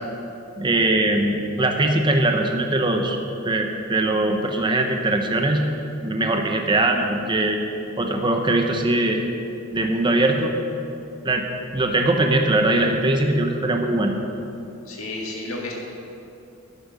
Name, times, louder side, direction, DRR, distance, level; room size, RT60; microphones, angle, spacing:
voice 1, 0.6-3.2 3.4-5.6 6.0-7.6 8.0-9.2 9.7-10.5 11.2-11.4 11.7-14.1, right 2 dB, 25° right, 3 dB, 0.9 m, -21 dB
voice 2, 14.9-15.7, left 2 dB, 80° left, -2 dB, 2.0 m, -31 dB
11.0 x 10.5 x 6.3 m, 2.8 s
head